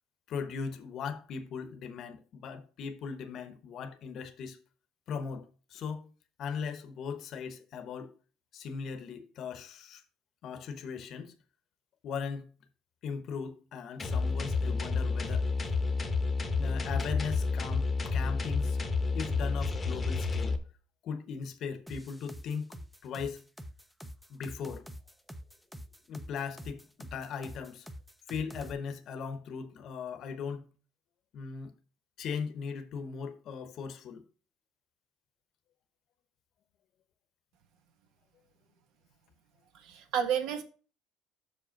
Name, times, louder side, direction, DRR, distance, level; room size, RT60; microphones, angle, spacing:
voice 1, 0.3-4.6 5.1-6.1 6.4-8.1 8.5-10.0 10.4-11.3 12.0-12.5 13.0-15.5 16.6-18.8 19.1-20.5 21.0-23.5 24.3-24.8 26.1-27.9 28.3-30.7 31.3-31.7 32.2-34.2, left 6 dB, 50° left, 0.9 m, -38 dB
sound 1, 14.0-20.6, left 4 dB, 20° left, 0.9 m, -30 dB
sound 2, 21.9-28.7, equal, ahead, 0.6 m, -46 dB
voice 2, 39.7-40.6, right 8 dB, 70° right, 1.4 m, -31 dB
6.5 x 5.2 x 5.1 m
cardioid pair, 130°, 0 cm